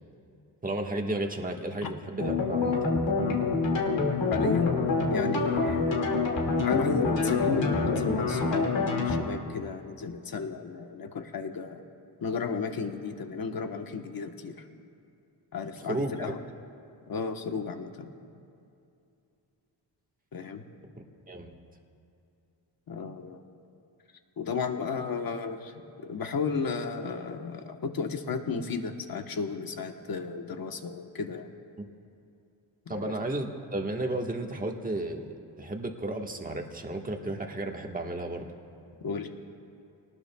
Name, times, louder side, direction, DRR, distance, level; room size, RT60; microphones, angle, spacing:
voice 1, 0.6-2.8 15.8-16.1 21.3-21.5 31.8-31.9 32.9-38.5, right 2 dB, 20° right, 1 dB, 1.4 m, -33 dB
sound 1, 2.2-9.2, left 3 dB, 85° left, 2.3 m, -26 dB
voice 2, 4.3-4.8 5.1-6.2 6.6-11.8 12.2-14.6 15.5-16.4 17.1-18.1 20.3-20.6 22.9-23.4 24.4-31.5 32.9-33.1 39.0-39.3, left 5 dB, 55° left, 5 dB, 1.2 m, -33 dB
27.5 x 19.0 x 2.3 m, 2.6 s
wide cardioid pair, 115°, 43 cm